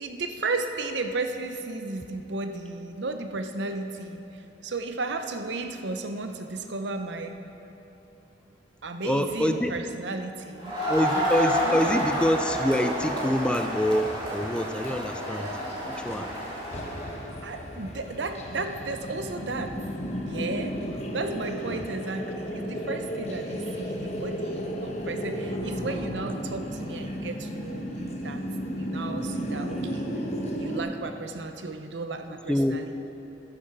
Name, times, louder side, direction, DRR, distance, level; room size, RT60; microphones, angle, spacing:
voice 1, 0.0-7.4 8.8-10.8 11.6-11.8 17.4-19.8 20.3-20.8 21.1-28.4 28.8-30.1 30.6-32.9, right 3 dB, 70° right, 7 dB, 0.7 m, -34 dB
voice 2, 9.0-9.7 10.9-15.5 15.9-16.3 21.6-21.8 32.5-32.8, equal, 5° left, 7 dB, 0.3 m, -26 dB
Crowd, 10.6-17.2, equal, 25° right, 2.9 m, -29 dB
sound 1, 14.7-30.8, equal, 35° left, 0.9 m, -34 dB
11.0 x 7.8 x 6.0 m, 2.9 s
head